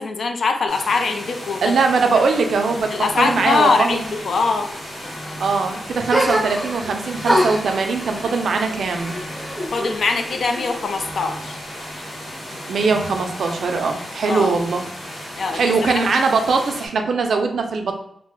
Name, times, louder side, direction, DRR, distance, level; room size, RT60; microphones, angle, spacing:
voice 1, 0.0-1.7 2.9-4.7 9.7-11.6 14.3-14.5 15.4-16.0, left 4 dB, 65° left, 5 dB, 0.3 m, -22 dB
sound 1, 0.7-16.9, equal, 85° left, 1.2 m, -35 dB
voice 2, 1.6-4.1 5.4-9.2 12.7-14.9 15.5-17.9, right 4 dB, 80° right, 4 dB, 0.4 m, -21 dB
sound 2, 2.3-2.4 2.7-15.9 16.7-16.8, equal, 45° left, 0.8 m, -43 dB
sound 3, 6.1-6.9 7.2-10.0 10.3-11.1, equal, 5° right, 0.7 m, -24 dB
2.4 x 2.0 x 3.6 m, 0.76 s
wide cardioid pair, 130°, 0 cm